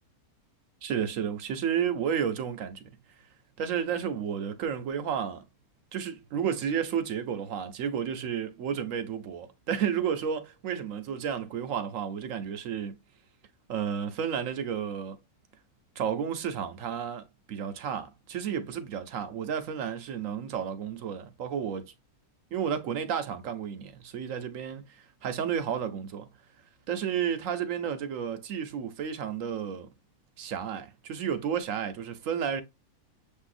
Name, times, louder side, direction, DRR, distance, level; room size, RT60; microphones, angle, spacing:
voice 1, 0.8-2.8 3.6-5.4 5.9-13.0 13.7-15.2 16.0-21.9 22.5-26.3 26.9-29.9 30.4-32.6, right 8 dB, 65° right, 1.0 m, -32 dB
6.9 x 2.7 x 2.5 m
omnidirectional pair, 1.6 m